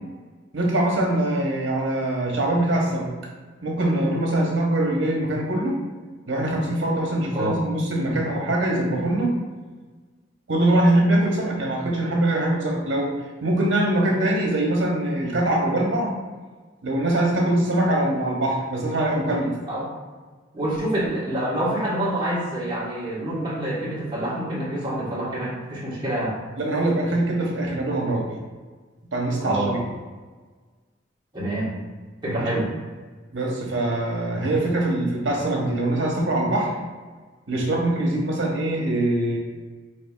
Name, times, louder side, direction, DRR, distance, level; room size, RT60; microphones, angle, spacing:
voice 1, 0.5-3.1 3.6-5.7 6.3-9.3 10.5-13.1 13.4-16.1 16.8-19.5 26.6-28.3 29.1-29.8 32.3-32.6 33.3-36.7 37.5-39.4, right 1 dB, 80° right, -1 dB, 1.0 m, -23 dB
voice 2, 20.5-26.4 29.4-29.8 31.3-31.7 32.2-32.7, right 1 dB, 25° right, -8 dB, 1.5 m, -27 dB
6.0 x 2.8 x 2.4 m, 1.4 s
head